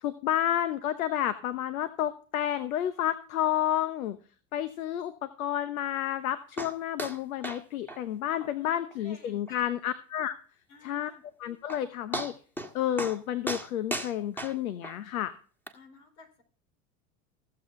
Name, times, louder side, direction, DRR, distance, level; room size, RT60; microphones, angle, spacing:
voice 1, 0.0-4.2 4.5-10.3 10.8-11.1 11.4-12.3 12.7-15.3, left 11 dB, 75° left, 14 dB, 1.0 m, -30 dB
sound 1, 6.6-6.7 7.0-7.2 7.4-7.6 7.9-8.0 8.4-8.5 8.9-9.0 9.5-9.6 11.3-11.4 11.7-11.8 12.1-12.7 13.0-13.2 13.5-14.9 15.7-15.8, right 1 dB, 5° left, 1.8 m, -35 dB
voice 2, 8.6-9.6 10.7-11.2 15.7-16.4, left 3 dB, 60° left, 5 dB, 4.6 m, -54 dB
15.5 x 7.9 x 3.8 m, 0.39 s
hypercardioid pair, 85°, 42 cm